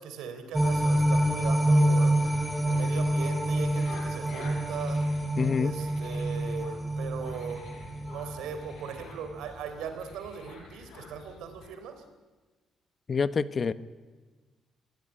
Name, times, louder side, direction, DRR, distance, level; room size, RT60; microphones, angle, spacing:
voice 1, 0.0-2.2 2.6-5.0 5.6-7.6 8.0-12.0, right 6 dB, 90° right, 8 dB, 3.8 m, -39 dB
sound 1, 0.5-8.9 9.3-9.4, right 1 dB, 10° right, 4.3 m, -27 dB
sound 2, 1.9-11.7, left 4 dB, 70° left, 5.6 m, -49 dB
voice 2, 5.4-5.7 13.1-13.7, left 5 dB, 40° left, 14 dB, 1.1 m, -26 dB
25.5 x 17.5 x 9.9 m, 1.3 s
cardioid pair, 90°, 0 cm